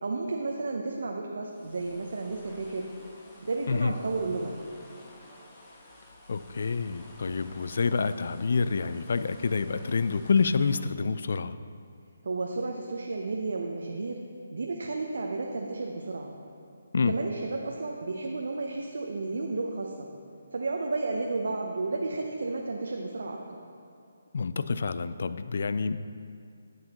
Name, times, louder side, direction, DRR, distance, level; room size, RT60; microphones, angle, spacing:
voice 1, 0.0-2.9 3.4-4.6 12.2-14.2 14.5-16.3 17.0-20.1 20.5-23.6, right 3 dB, 65° right, 1 dB, 0.8 m, -32 dB
sound 1, 1.5-10.8, left 1 dB, 20° left, 1.3 m, -52 dB
voice 2, 6.3-11.6 16.9-17.1 24.3-26.0, left 4 dB, 60° left, 13 dB, 0.4 m, -27 dB
11.5 x 7.9 x 3.0 m, 2.4 s
figure-of-eight pair, 150°, 0 cm